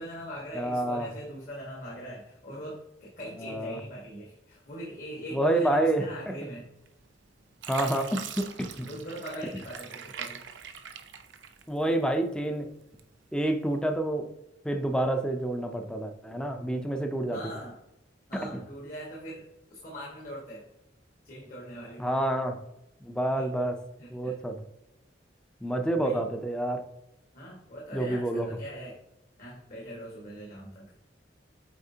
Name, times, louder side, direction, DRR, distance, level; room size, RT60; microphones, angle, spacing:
voice 1, 0.0-6.7 8.9-10.4 17.3-17.8 18.3-19.4 19.7-20.6 21.2-22.1 23.4-23.5 24.0-24.4 25.9-26.2 27.3-29.0 29.4-30.9, equal, 50° left, -4 dB, 1.6 m, -41 dB
voice 2, 0.5-1.1 3.4-3.8 5.3-6.4 7.7-8.9 11.7-12.7 13.3-14.3 14.6-17.4 18.3-18.6 22.0-22.6 23.0-23.8 24.1-24.6 25.6-26.9 27.9-28.5, right 1 dB, 5° left, 6 dB, 0.5 m, -28 dB
Fill (with liquid), 6.9-7.2 7.6-12.0 12.4-13.3 13.8-14.0, right 7 dB, 85° right, 0.7 m, -42 dB
8.4 x 4.2 x 2.8 m, 0.87 s
head